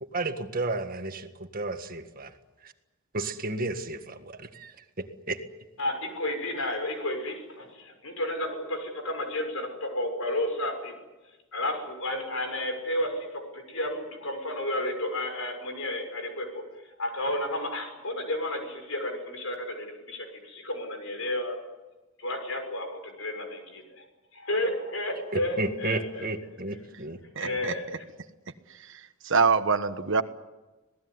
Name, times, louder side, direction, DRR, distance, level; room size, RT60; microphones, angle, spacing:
voice 1, 0.0-2.3 2.6-2.7 3.1-5.4 25.3-27.2 27.4-27.6, right 2 dB, 45° right, 7 dB, 1.7 m, -33 dB
voice 2, 5.8-10.9 11.5-13.3 13.5-16.6 17.0-21.6 22.2-24.0 24.3-26.2 27.4-28.0, left 1 dB, 70° left, 5 dB, 6.4 m, -32 dB
voice 3, 27.3-27.7 29.2-30.2, right 5 dB, 60° right, 10 dB, 1.3 m, -24 dB
27.0 x 18.5 x 9.7 m, 1.1 s
head